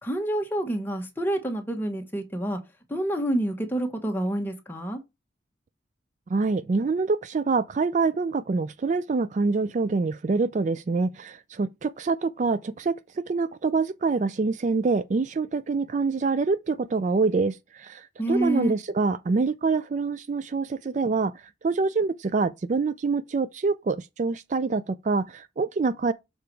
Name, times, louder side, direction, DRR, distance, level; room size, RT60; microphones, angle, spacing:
voice 1, 0.0-2.6 2.9-5.0 18.2-18.8, right 1 dB, 10° left, 1.2 m, -28 dB
voice 2, 6.3-26.1, right 4 dB, 40° right, 0.3 m, -26 dB
6.8 x 3.9 x 4.6 m
head